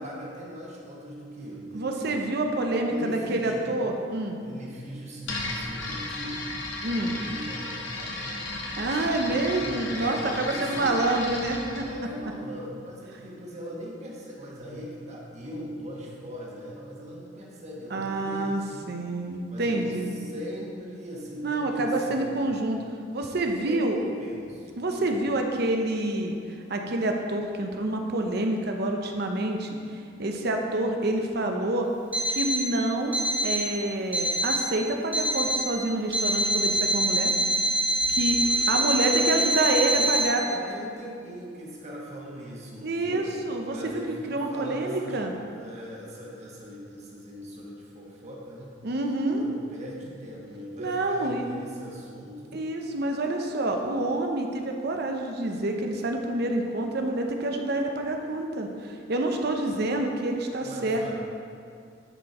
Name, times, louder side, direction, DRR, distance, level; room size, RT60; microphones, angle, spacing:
voice 1, 0.0-2.0 2.5-2.6 2.9-3.6 4.4-6.5 6.8-11.1 11.8-18.7 19.5-22.5 23.6-25.2 38.4-48.7 49.3-52.6 60.6-61.1, equal, 35° right, -4 dB, 1.4 m, -40 dB
voice 2, 1.7-4.4 5.3-5.5 6.8-7.2 8.8-11.8 17.9-18.6 18.9-20.2 21.4-22.8 23.1-24.0 24.8-26.4 26.7-29.8 30.2-31.9 32.3-33.1 33.4-37.6 38.1-38.4 38.7-40.4 42.8-45.3 48.8-49.4 50.8-51.4 52.5-61.1, right 2 dB, 60° right, 3 dB, 0.8 m, -27 dB
sound 1, 5.2-11.9, left 2 dB, 75° left, 1.2 m, -34 dB
Alarm, 32.1-32.7 33.1-33.7 34.1-34.7 35.1-35.7 36.1-40.3, right 1 dB, 10° right, 1.2 m, -25 dB
9.9 x 4.5 x 4.3 m, 2.4 s
head